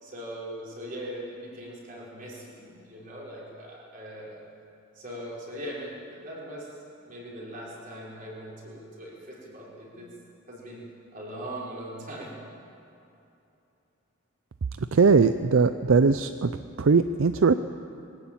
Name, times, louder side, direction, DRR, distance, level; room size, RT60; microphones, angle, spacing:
voice 1, 0.0-4.4 4.9-6.7 7.0-10.1 10.5-10.8 11.1-12.4, equal, 40° right, -5 dB, 4.9 m, -40 dB
voice 2, 14.9-16.5 16.8-17.5, right 4 dB, 65° right, 11 dB, 0.5 m, -20 dB
22.5 x 13.0 x 8.9 m, 2.8 s
head